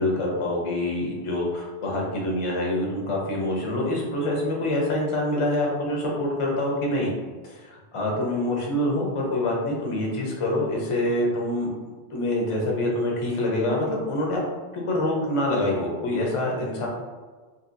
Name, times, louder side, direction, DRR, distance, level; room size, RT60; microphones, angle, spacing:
voice 1, 0.0-7.1 7.4-11.7 12.1-14.4 14.7-16.9, left 1 dB, 35° left, -2 dB, 0.5 m, -26 dB
2.7 x 2.6 x 2.5 m, 1.4 s
omnidirectional pair, 1.2 m